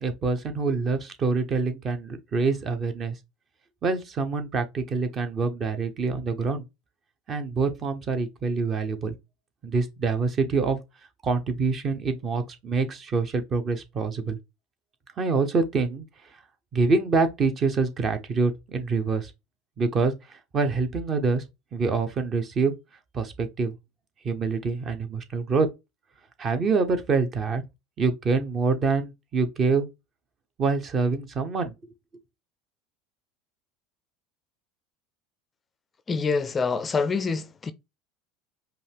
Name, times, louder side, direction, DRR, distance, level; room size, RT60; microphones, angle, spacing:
voice 1, 0.0-3.1 3.8-6.6 7.3-9.1 9.6-10.8 11.2-14.4 15.2-16.0 16.7-19.3 19.8-20.1 20.5-21.4 21.7-22.7 23.1-23.7 24.2-25.7 26.4-27.6 28.0-29.9 30.6-31.7, right 4 dB, 35° right, 1.0 m, -25 dB
voice 2, 36.1-37.7, left 4 dB, 25° left, 0.4 m, -26 dB
5.3 x 2.5 x 3.5 m
hypercardioid pair, 75°, 0 cm